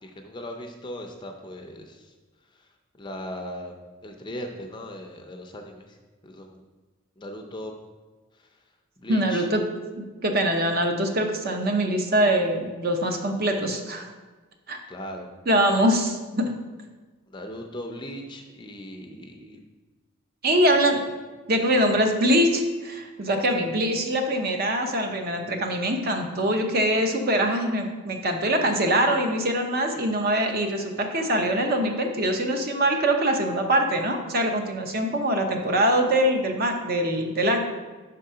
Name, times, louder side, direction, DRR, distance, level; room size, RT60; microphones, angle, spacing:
voice 1, 0.0-2.1 3.0-3.7 4.0-6.0 6.2-6.6 7.2-7.7 8.4-8.5 9.0-9.5 14.9-15.3 17.3-19.6 20.5-20.6 21.8-22.0, left 1 dB, 20° left, 3 dB, 0.5 m, -38 dB
voice 2, 9.1-9.6 10.0-14.1 14.7-14.8 15.5-16.5 20.4-21.0 21.5-37.6, right 1 dB, 45° right, 4 dB, 0.7 m, -23 dB
5.5 x 3.8 x 5.5 m, 1.3 s
head